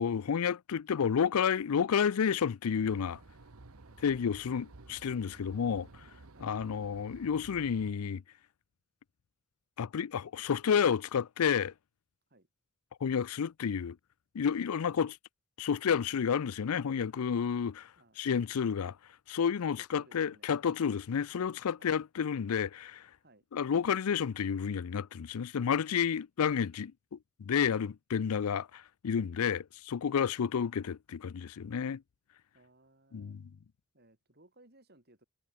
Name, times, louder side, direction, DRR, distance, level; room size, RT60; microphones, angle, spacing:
voice 1, 0.0-3.2 4.0-5.9 6.4-8.2 9.8-11.7 13.0-14.0 14.3-15.2 15.6-17.9 18.2-19.0 19.3-23.1 23.5-32.0 33.1-33.4, left 7 dB, 90° left, 0.4 m, -30 dB
sound 1, 2.8-7.9, right 2 dB, 85° right, 1.2 m, -54 dB
voice 2, 19.6-20.5 21.8-21.9 23.2-23.5 30.2-30.4 32.5-33.4 33.9-35.2, right 2 dB, 45° right, 5.3 m, -62 dB
head